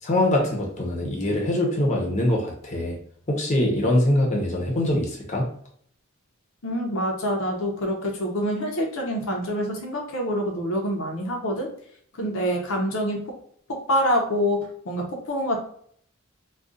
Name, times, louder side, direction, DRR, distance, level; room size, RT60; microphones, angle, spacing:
voice 1, 0.0-3.0 3.3-5.4, left 1 dB, 35° left, -1 dB, 0.7 m, -23 dB
voice 2, 6.6-11.7 12.2-13.3 13.7-15.6, equal, 70° left, 1 dB, 0.7 m, -26 dB
2.4 x 2.3 x 3.8 m, 0.62 s
head